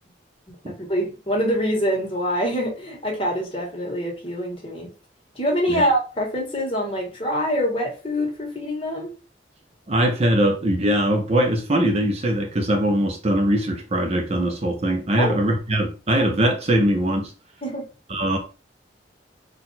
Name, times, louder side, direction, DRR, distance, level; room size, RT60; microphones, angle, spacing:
voice 1, 0.6-4.9 5.3-9.1 15.2-15.3 17.6-17.8, equal, 30° left, -1 dB, 1.6 m, -25 dB
voice 2, 9.9-17.3 18.1-18.4, right 1 dB, 35° right, 3 dB, 0.8 m, -21 dB
4.4 x 2.7 x 3.9 m, 0.33 s
head